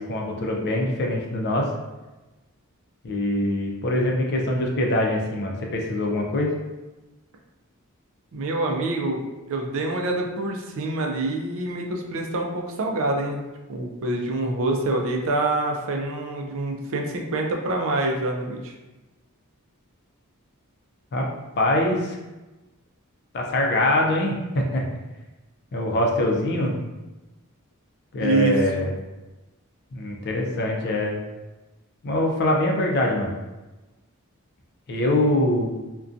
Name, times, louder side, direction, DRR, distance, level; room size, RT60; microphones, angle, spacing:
voice 1, 0.0-1.7 3.0-6.5 21.1-21.3 21.6-22.2 23.3-24.9 25.7-26.8 28.1-28.9 29.9-31.2 32.0-33.4 34.9-35.7, left 1 dB, 50° left, 0 dB, 0.4 m, -23 dB
voice 2, 8.3-13.4 13.7-18.7 28.2-28.9, right 2 dB, 65° right, 2 dB, 0.4 m, -26 dB
2.5 x 2.2 x 2.5 m, 1.1 s
head